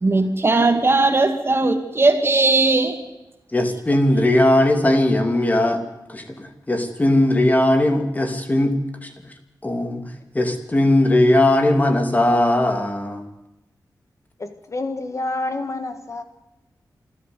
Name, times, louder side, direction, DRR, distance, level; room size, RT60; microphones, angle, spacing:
voice 1, 0.0-3.0, right 3 dB, 35° right, 2.3 m, -18 dB
voice 2, 3.5-5.8 6.1-8.8 9.0-9.1 9.6-10.0 10.3-13.2, left 1 dB, 20° left, 2.8 m, -18 dB
voice 3, 14.4-16.2, left 2 dB, 45° left, 1.6 m, -28 dB
27.5 x 13.0 x 8.2 m
wide cardioid pair, 125°, 7 cm